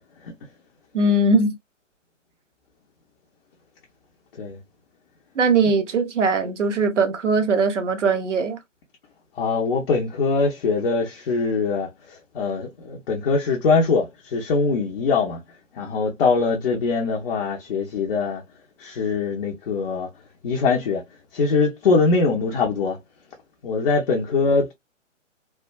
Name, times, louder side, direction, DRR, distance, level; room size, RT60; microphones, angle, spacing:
voice 1, 0.9-1.6 5.3-8.6, right 3 dB, 65° right, 1.0 m, -20 dB
voice 2, 9.4-15.4 15.7-18.4 18.8-20.1 20.4-21.0 21.3-23.0 23.6-24.7, left 4 dB, 45° left, 0.8 m, -22 dB
3.3 x 2.1 x 2.3 m
figure-of-eight pair, 135°, 38 cm